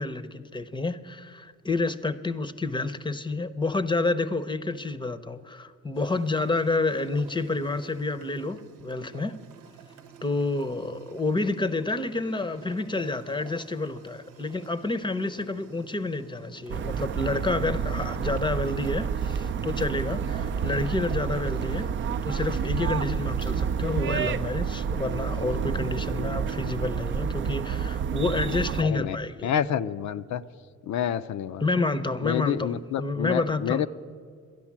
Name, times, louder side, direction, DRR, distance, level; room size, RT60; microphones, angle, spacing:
voice 1, 0.0-9.4 10.2-21.9 22.3-29.5 31.6-32.7 33.0-33.8, left 3 dB, 15° left, 14 dB, 0.7 m, -29 dB
sound 1, 5.9-24.5, right 8 dB, 90° right, 0.9 m, -50 dB
sound 2, 16.7-28.8, right 7 dB, 40° right, 0.4 m, -29 dB
voice 2, 28.8-29.2 29.4-30.4 30.8-31.7 32.2-33.9, left 9 dB, 70° left, 13 dB, 0.6 m, -28 dB
12.0 x 11.0 x 7.3 m, 2.1 s
cardioid pair, 90°, 30 cm